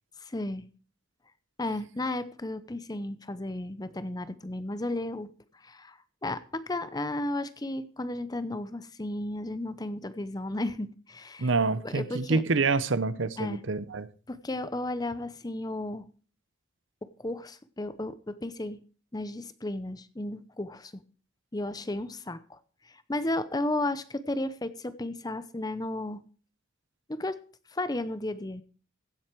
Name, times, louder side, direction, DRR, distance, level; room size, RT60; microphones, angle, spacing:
voice 1, 0.2-0.7 1.6-5.3 5.6-11.5 11.8-12.4 13.4-13.6 14.3-16.1 17.0-18.8 19.1-20.9 21.5-22.6 22.9-26.2 27.1-27.4 27.7-28.6, left 1 dB, 20° left, 0.7 m, -34 dB
voice 2, 11.4-14.1, right 3 dB, 65° right, 0.8 m, -27 dB
16.0 x 7.9 x 4.6 m
head